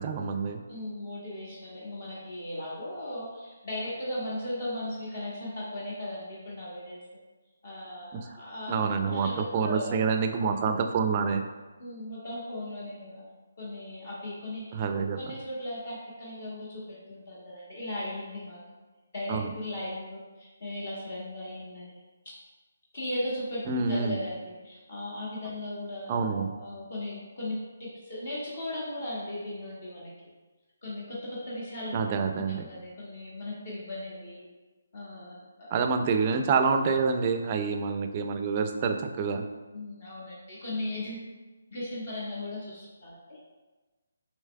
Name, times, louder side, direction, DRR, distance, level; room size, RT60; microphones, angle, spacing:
voice 1, 0.0-0.6 8.1-8.2 8.7-11.5 14.7-15.2 19.3-19.5 23.7-24.2 26.1-26.5 31.9-32.7 35.7-39.4, right 5 dB, 30° right, 6 dB, 0.3 m, -27 dB
voice 2, 0.7-7.0 7.6-10.0 11.8-13.2 13.6-14.8 15.2-18.6 19.1-22.0 22.2-22.3 22.9-30.1 30.8-32.0 32.4-34.5 34.9-35.7 37.4-37.5 39.7-41.3 41.7-43.4, left 1 dB, 50° left, -6 dB, 1.1 m, -37 dB
6.4 x 3.0 x 2.2 m, 1.2 s
figure-of-eight pair, 145°, 0 cm